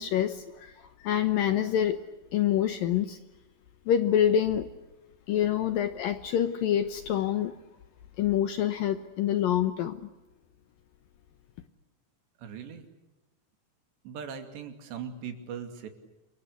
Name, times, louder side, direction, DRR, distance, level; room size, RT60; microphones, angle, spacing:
voice 1, 0.0-2.0 2.3-3.2 3.9-4.7 5.3-7.5 8.2-10.0, left 10 dB, 70° left, 10 dB, 2.3 m, -26 dB
voice 2, 12.4-12.9 14.0-15.9, right 7 dB, 75° right, 7 dB, 4.6 m, -39 dB
29.0 x 23.0 x 8.4 m, 1.0 s
omnidirectional pair, 5.1 m